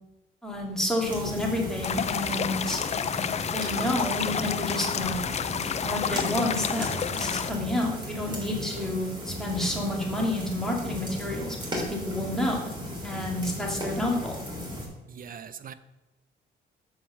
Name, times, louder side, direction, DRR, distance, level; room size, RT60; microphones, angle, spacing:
voice 1, 0.4-2.8 3.5-5.2 5.8-6.9 7.1-12.7 13.0-14.4, left 1 dB, ahead, -2 dB, 2.3 m, -29 dB
sound 1, 1.0-14.9, left 1 dB, 25° right, 3.1 m, -36 dB
sound 2, 1.8-7.5, left 7 dB, 35° left, 0.4 m, -30 dB
voice 2, 15.1-15.7, right 7 dB, 45° right, 12 dB, 0.6 m, -41 dB
7.4 x 4.2 x 6.8 m, 1.0 s
cardioid pair, 90°, 20 cm